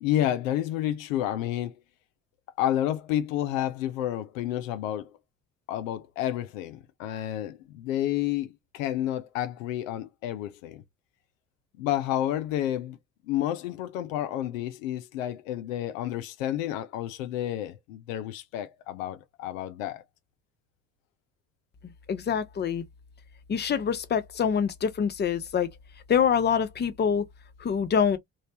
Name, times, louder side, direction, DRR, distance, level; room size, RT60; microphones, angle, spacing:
voice 1, 0.0-1.8 2.6-5.1 5.7-10.8 11.8-13.0 13.3-20.0, left 12 dB, 70° left, 0.6 m, -30 dB
voice 2, 22.1-22.8 23.5-25.7 26.1-27.3 27.6-28.2, left 7 dB, 25° left, 0.7 m, -25 dB
3.1 x 2.5 x 2.8 m
figure-of-eight pair, 45°, 41 cm